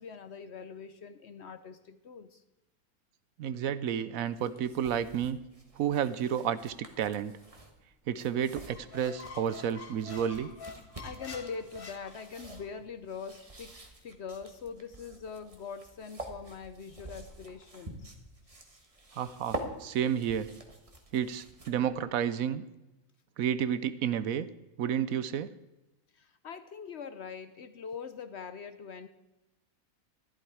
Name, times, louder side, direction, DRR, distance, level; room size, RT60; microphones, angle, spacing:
voice 1, 0.0-2.4 11.0-13.7 14.0-18.1 26.1-29.1, left 6 dB, 55° left, 11 dB, 0.9 m, -43 dB
voice 2, 3.4-5.4 5.8-7.4 8.1-10.5 19.2-20.5 21.1-22.6 23.4-24.5 24.8-25.5, right 9 dB, 75° right, 14 dB, 1.0 m, -31 dB
sound 1, 4.2-22.0, right 1 dB, 25° right, 1.4 m, -47 dB
Squeak, 8.6-12.7, left 5 dB, 40° left, 1.3 m, -47 dB
13.5 x 11.5 x 4.8 m, 0.98 s
omnidirectional pair, 1.6 m